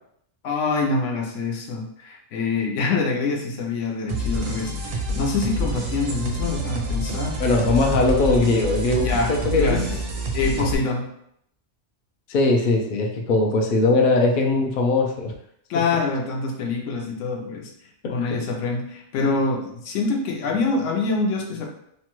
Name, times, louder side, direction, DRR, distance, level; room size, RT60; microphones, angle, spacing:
voice 1, 0.4-7.4 9.0-9.9 10.3-11.1 15.7-17.7 18.1-21.7, left 3 dB, 80° left, 2 dB, 0.9 m, -25 dB
sound 1, 4.1-10.8, equal, 60° right, 0.6 m, -27 dB
voice 2, 7.4-10.0 12.3-15.3 18.0-18.4, left 2 dB, 60° left, 1 dB, 0.6 m, -20 dB
3.0 x 2.2 x 2.9 m, 0.72 s
omnidirectional pair, 1.3 m